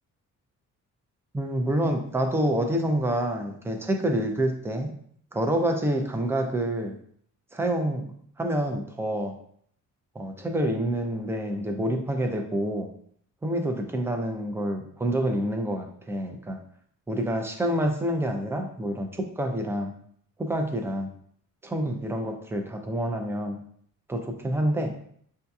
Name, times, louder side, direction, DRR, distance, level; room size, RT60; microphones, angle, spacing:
voice 1, 1.3-4.9 5.3-6.9 7.5-9.3 10.1-12.9 13.4-16.6 17.1-19.9 20.4-21.1 21.6-23.6 24.1-24.9, right 1 dB, 10° right, 4 dB, 0.4 m, -27 dB
6.6 x 2.8 x 2.3 m, 0.63 s
cardioid pair, 155°, 32 cm